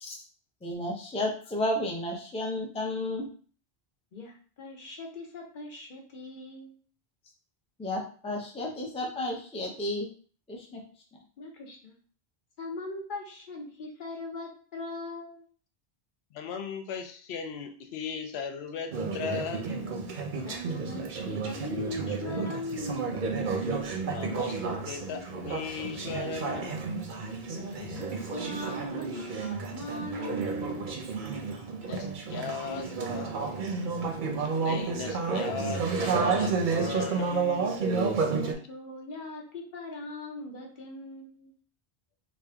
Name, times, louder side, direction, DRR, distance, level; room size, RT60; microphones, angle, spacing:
voice 1, 0.6-3.3 7.8-10.1 10.5-10.8, left 1 dB, 10° left, 0 dB, 0.5 m, -32 dB
voice 2, 4.1-6.7 11.4-11.9 12.6-15.4 20.4-23.2 27.5-31.0 38.4-41.5, left 2 dB, 55° left, 0 dB, 1.0 m, -40 dB
voice 3, 16.3-19.7 24.1-24.6 24.9-26.8 31.9-33.4 34.4-37.7, left 6 dB, 80° left, 6 dB, 0.8 m, -37 dB
Conversation / Chatter, 18.9-38.5, right 4 dB, 55° right, 0.7 m, -31 dB
3.4 x 2.5 x 3.4 m, 0.42 s
omnidirectional pair, 1.1 m